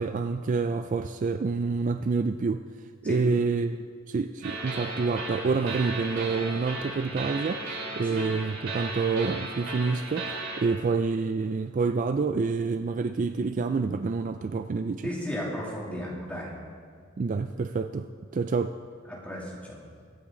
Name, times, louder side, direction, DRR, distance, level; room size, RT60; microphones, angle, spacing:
voice 1, 0.0-2.6 3.0-7.7 8.0-15.1 17.2-18.1 18.3-18.8, right 4 dB, 40° right, 9 dB, 0.3 m, -28 dB
sound 1, 4.4-10.6, right 2 dB, 75° right, 4.2 m, -35 dB
voice 2, 15.0-16.5 19.1-19.8, equal, 5° left, -5 dB, 2.8 m, -34 dB
23.5 x 8.9 x 3.8 m, 2.1 s
head